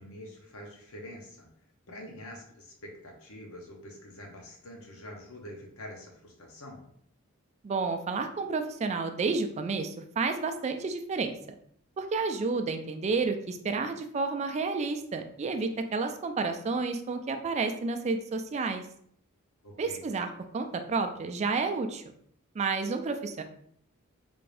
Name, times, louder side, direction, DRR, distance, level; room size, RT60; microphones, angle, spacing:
voice 1, 0.0-1.5 1.9-6.8 19.6-20.0, left 1 dB, 75° left, 1 dB, 0.9 m, -46 dB
voice 2, 7.6-11.4 12.0-18.8 19.8-20.3 20.5-22.0 22.5-23.4, right 4 dB, 30° right, 7 dB, 0.3 m, -30 dB
3.5 x 2.5 x 3.3 m, 0.65 s
head